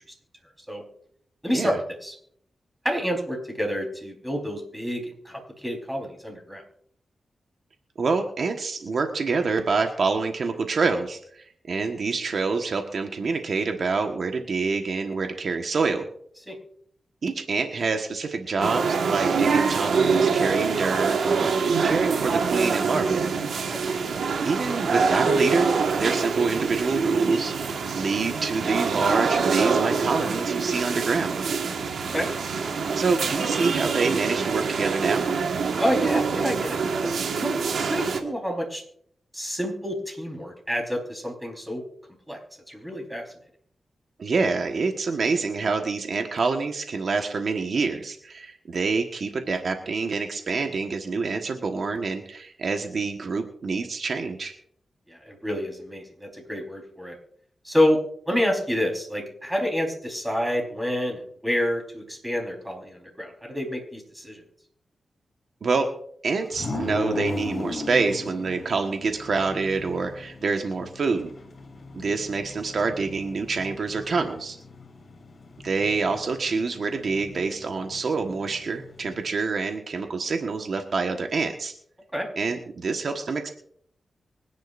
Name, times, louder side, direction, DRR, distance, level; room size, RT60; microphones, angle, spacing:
voice 1, 1.4-2.1 2.8-6.6 16.5-16.6 23.6-23.8 32.1-32.3 35.8-37.6 37.9-38.8 39.3-41.8 42.3-42.4 42.7-43.2 55.1-57.1 57.6-58.0 58.3-64.4 82.1-82.3, equal, 10° right, 1 dB, 4.3 m, -28 dB
voice 2, 8.0-16.0 17.2-23.2 24.4-25.7 25.9-31.4 33.0-35.2 44.2-54.5 65.6-65.9 66.2-71.3 71.9-74.6 75.6-81.7 82.4-83.5, right 4 dB, 65° right, 4 dB, 1.4 m, -26 dB
sound 1, 18.6-38.2, right 5 dB, 85° right, 1.6 m, -25 dB
sound 2, 66.5-79.3, left 3 dB, 55° left, 3.9 m, -38 dB
25.0 x 10.5 x 2.6 m, 0.64 s
cardioid pair, 75°, 0 cm